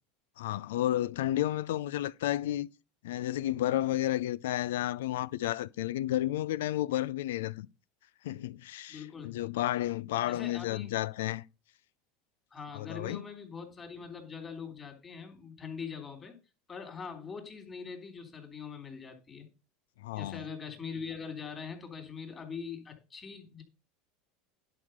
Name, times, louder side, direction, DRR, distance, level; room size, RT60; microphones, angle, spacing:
voice 1, 0.4-2.7 3.0-7.7 8.2-11.4 12.7-13.2 20.0-20.4, left 14 dB, 90° left, 0.5 m, -32 dB
voice 2, 8.9-9.3 10.3-10.9 12.5-16.4 16.7-19.5 20.1-23.6, left 6 dB, 25° left, 3.5 m, -42 dB
11.0 x 5.0 x 6.5 m
supercardioid pair, 120°, 0 cm